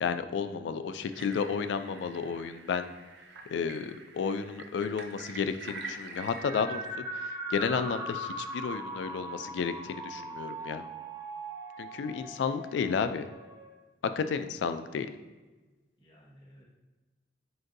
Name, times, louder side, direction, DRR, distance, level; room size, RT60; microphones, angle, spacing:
voice 1, 0.0-2.9 3.5-6.9 7.1-10.8 11.8-13.3 14.2-15.1, left 6 dB, 75° left, 11 dB, 0.3 m, -32 dB
sound 1, 1.1-6.4, right 3 dB, 70° right, 0.5 m, -46 dB
sound 2, 6.1-13.7, right 1 dB, 20° right, 0.7 m, -40 dB
voice 2, 16.0-16.6, equal, 25° left, -6 dB, 1.2 m, -58 dB
7.7 x 2.6 x 2.6 m, 1.2 s
head